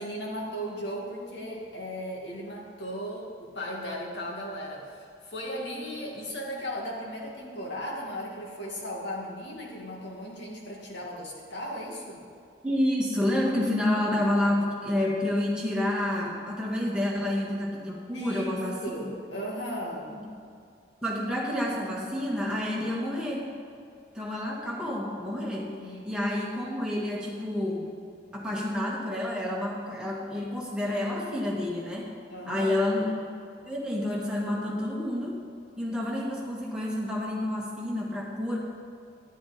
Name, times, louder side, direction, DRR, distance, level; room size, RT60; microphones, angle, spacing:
voice 1, 0.0-12.2 18.1-20.1 25.7-26.1 32.3-32.7, equal, 85° left, -2 dB, 2.4 m, -36 dB
voice 2, 12.6-19.1 20.1-20.3 21.0-23.5 24.1-25.7 26.0-27.9 28.3-32.1 32.5-33.1 33.7-35.4 35.8-38.6, left 1 dB, 5° right, -4 dB, 2.0 m, -29 dB
11.0 x 11.0 x 4.4 m, 2.4 s
head